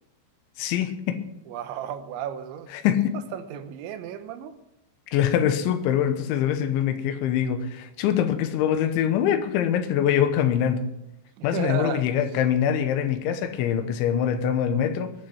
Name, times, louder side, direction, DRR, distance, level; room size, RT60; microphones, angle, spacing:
voice 1, 0.6-1.2 2.7-3.1 5.1-10.9 11.4-15.1, left 9 dB, 80° left, 9 dB, 3.4 m, -24 dB
voice 2, 1.5-2.7 3.3-4.6 11.4-12.1, right 8 dB, 85° right, 9 dB, 3.3 m, -33 dB
21.5 x 7.7 x 5.5 m, 0.86 s
omnidirectional pair, 5.3 m